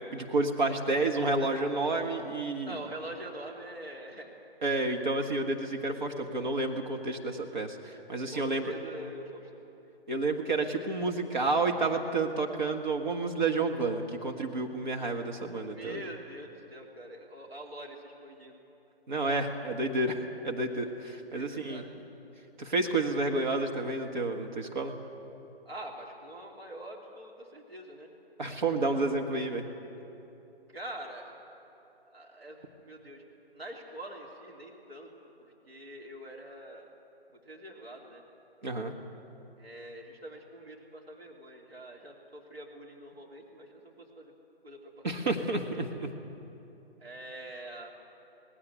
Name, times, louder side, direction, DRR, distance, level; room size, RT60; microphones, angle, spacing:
voice 1, 0.0-2.8 4.6-8.7 10.1-16.0 19.1-21.8 22.6-25.0 28.4-29.6 38.6-38.9 45.0-46.1, right 3 dB, 50° right, 2 dB, 1.7 m, -30 dB
voice 2, 2.7-4.3 8.3-9.5 15.7-18.6 21.3-21.9 25.6-28.1 30.7-31.3 32.0-33.2 33.5-35.1 35.4-36.9 37.3-38.2 39.6-44.3 44.6-45.3 47.0-47.9, right 1 dB, 75° right, -1 dB, 3.3 m, -45 dB
18.5 x 17.0 x 9.7 m, 2.9 s
figure-of-eight pair, 145°, 31 cm